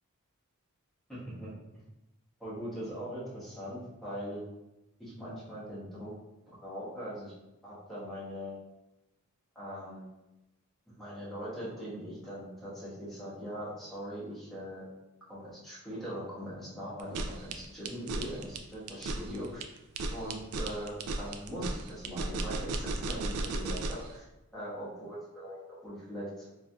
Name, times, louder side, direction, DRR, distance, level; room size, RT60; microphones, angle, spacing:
voice 1, 1.1-1.8 2.4-4.4 5.0-6.1 6.5-7.3 7.6-8.5 9.5-10.1 10.9-14.8 15.3-19.6 20.1-24.2 24.5-26.5, equal, ahead, -10 dB, 1.2 m, -41 dB
sound 1, 17.0-24.1, right 2 dB, 90° right, 0.3 m, -35 dB
3.4 x 2.7 x 2.3 m, 0.95 s
head